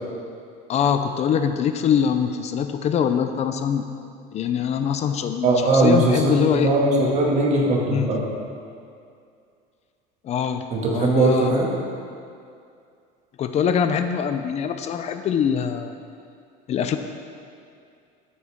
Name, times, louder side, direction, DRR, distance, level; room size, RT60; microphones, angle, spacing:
voice 1, 0.7-3.9 4.3-6.7 7.9-8.1 10.2-11.6 13.4-15.9 16.7-17.0, left 7 dB, 35° left, 8 dB, 0.5 m, -23 dB
voice 2, 5.4-8.2 10.7-11.7, right 2 dB, 35° right, -3 dB, 2.1 m, -20 dB
13.0 x 8.6 x 3.6 m, 2.4 s
cardioid pair, 145°, 20 cm